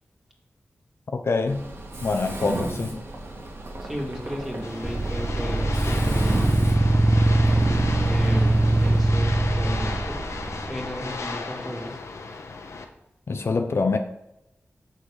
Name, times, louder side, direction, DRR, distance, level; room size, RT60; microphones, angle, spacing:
voice 1, 1.1-1.7 2.0-3.0 13.3-14.0, left 3 dB, 60° left, 0.6 m, -25 dB
Mechanisms, 1.5-9.1, right 2 dB, 60° right, 1.9 m, -35 dB
voice 2, 3.8-6.4 8.1-10.2 10.7-12.0, equal, 5° right, 2.1 m, -34 dB
sound 1, 4.6-12.8, left 3 dB, 80° left, 1.0 m, -35 dB
sound 2, 4.8-11.0, right 2 dB, 20° right, 0.6 m, -22 dB
6.9 x 6.3 x 4.9 m
wide cardioid pair, 105°, 5 cm